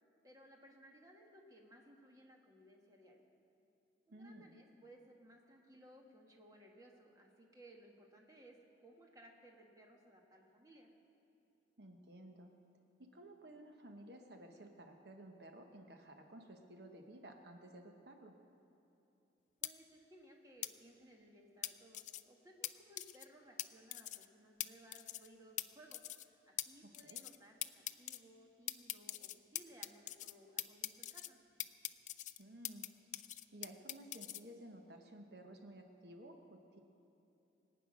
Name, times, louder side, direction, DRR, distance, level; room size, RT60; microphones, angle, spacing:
voice 1, 0.2-3.3 4.1-10.9 19.6-31.4, right 1 dB, 20° right, 0 dB, 1.6 m, -61 dB
voice 2, 4.1-4.5 11.8-12.5 13.0-18.4 27.0-27.2 32.4-32.9 33.5-36.8, right 1 dB, 65° right, 4 dB, 1.1 m, -55 dB
sound 1, 19.6-19.7 20.6-20.7 21.6-22.2 22.6-22.7 23.0-23.3 23.6-23.7 23.9-24.3 24.6-24.7 24.9-25.3 25.6-25.7 25.9-26.3 26.6-26.7 26.9-27.4 27.6-28.2 28.7-30.3 30.6-31.3 31.6-32.9 33.1-34.4, left 14 dB, 45° left, 0.4 m, -42 dB
23.0 x 9.2 x 6.2 m, 2.9 s
head